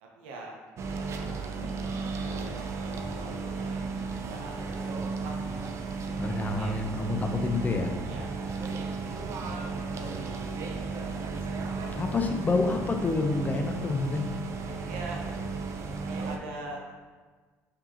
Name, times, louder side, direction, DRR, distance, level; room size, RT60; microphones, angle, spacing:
voice 1, 0.0-0.5 0.9-5.6 6.2-6.8 8.0-11.3 11.6-12.0 14.6-15.2 16.0-17.0, right 2 dB, 90° right, -1 dB, 0.6 m, -45 dB
sound 1, 0.8-16.4, right 4 dB, 50° right, 0.4 m, -34 dB
voice 2, 6.2-7.9 12.0-14.3, left 3 dB, 25° left, 5 dB, 0.5 m, -28 dB
4.6 x 2.8 x 2.9 m, 1.4 s
supercardioid pair, 75°, 6 cm